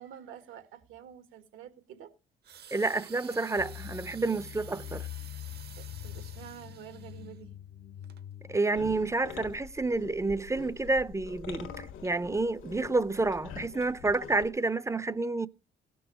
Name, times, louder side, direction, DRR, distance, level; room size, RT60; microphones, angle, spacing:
voice 1, 0.0-2.1 2.5-2.6 5.8-7.5, right 10 dB, 85° right, 1.7 m, -48 dB
sound 1, 2.4-7.4 8.0-8.2, right 8 dB, 55° right, 0.9 m, -51 dB
voice 2, 2.7-5.1 8.5-15.5, right 3 dB, 15° right, 0.5 m, -29 dB
sound 2, 3.6-8.6, left 12 dB, 40° left, 0.5 m, -43 dB
sound 3, 8.7-14.5, left 7 dB, 80° left, 1.4 m, -45 dB
17.0 x 6.2 x 4.9 m
cardioid pair, 90°, 20 cm